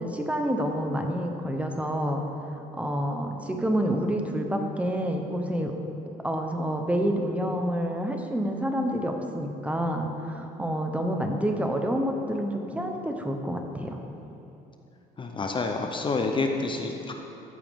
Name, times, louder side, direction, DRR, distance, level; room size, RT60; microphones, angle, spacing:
voice 1, 0.0-2.2 2.7-5.7 6.2-14.0, equal, 10° right, 3 dB, 0.9 m, -28 dB
voice 2, 15.2-17.1, left 3 dB, 30° left, 3 dB, 0.7 m, -28 dB
14.0 x 8.1 x 3.7 m, 2.8 s
cardioid pair, 110°, 17 cm